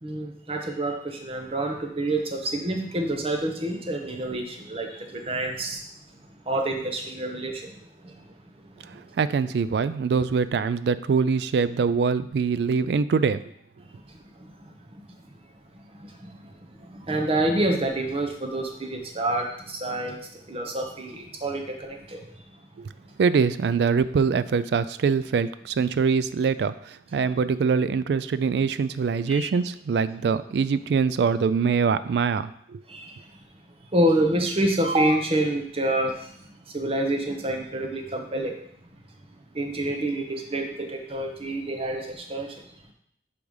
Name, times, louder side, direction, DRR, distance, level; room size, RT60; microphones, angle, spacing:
voice 1, 0.0-5.9 6.5-7.7 8.0-8.1 8.9-9.1 14.1-15.1 16.0-22.3 29.3-29.5 32.9-33.2 33.9-36.3 36.7-38.6 39.5-42.6, right 1 dB, 30° right, 3 dB, 0.8 m, -28 dB
voice 2, 9.2-13.4 22.8-22.9 23.2-32.8, right 5 dB, 65° right, 15 dB, 0.3 m, -23 dB
5.0 x 4.7 x 5.3 m, 0.69 s
head